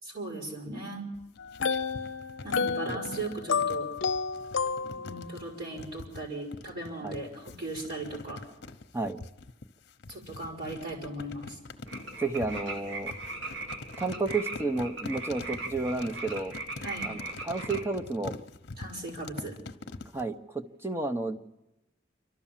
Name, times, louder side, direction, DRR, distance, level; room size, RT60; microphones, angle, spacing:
voice 1, 0.0-1.1 2.4-3.9 5.0-8.4 10.1-11.6 16.8-17.1 18.8-19.6, right 2 dB, 50° right, -1 dB, 4.5 m, -38 dB
sound 1, 1.1-20.3, left 3 dB, 55° left, 0.9 m, -44 dB
sound 2, 1.4-5.4, left 5 dB, 80° left, 0.6 m, -31 dB
sound 3, 11.9-17.9, right 2 dB, 80° right, 2.7 m, -39 dB
voice 2, 12.2-13.1 14.0-16.5 17.0-18.3 20.1-21.4, right 3 dB, 15° right, 8 dB, 0.9 m, -31 dB
28.0 x 12.5 x 7.4 m, 0.99 s
head